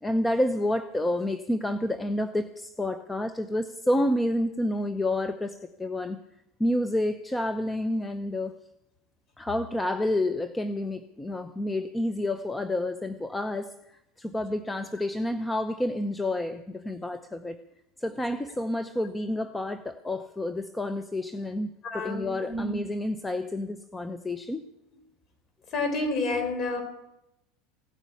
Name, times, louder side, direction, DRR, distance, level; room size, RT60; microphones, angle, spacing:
voice 1, 0.0-6.2 6.6-8.6 9.4-17.6 18.0-24.6, left 1 dB, 10° left, 10 dB, 0.7 m, -29 dB
voice 2, 21.8-22.8 25.7-26.8, left 2 dB, 40° left, 6 dB, 4.6 m, -29 dB
17.0 x 10.0 x 8.5 m, 0.88 s
supercardioid pair, 115°, 0 cm